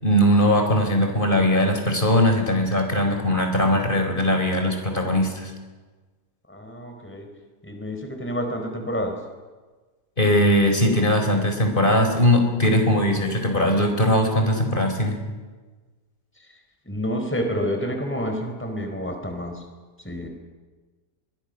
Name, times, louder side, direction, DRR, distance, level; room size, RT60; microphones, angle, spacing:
voice 1, 0.0-5.5 10.2-15.2, left 1 dB, 35° left, 4 dB, 4.7 m, -20 dB
voice 2, 6.5-7.3 7.6-9.2 16.9-19.6 20.0-20.3, equal, 10° left, 4 dB, 4.0 m, -29 dB
26.0 x 23.0 x 6.5 m, 1.3 s
omnidirectional pair, 1.5 m